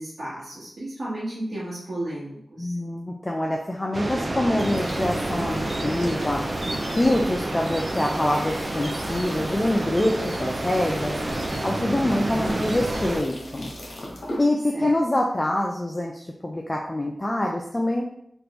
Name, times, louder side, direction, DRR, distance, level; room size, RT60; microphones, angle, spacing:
voice 1, 0.0-2.8 12.4-12.7 14.7-14.9, right 1 dB, 65° right, -10 dB, 1.2 m, -33 dB
voice 2, 2.6-6.4 6.9-11.1 11.6-13.7 14.4-18.0, left 1 dB, 25° left, 0 dB, 0.4 m, -25 dB
sound 1, 3.9-13.2, right 1 dB, 35° right, 0.5 m, -29 dB
sound 2, 4.5-14.4, left 1 dB, 65° left, 1.0 m, -40 dB
3.4 x 2.5 x 3.0 m, 0.73 s
cardioid pair, 55°, 0 cm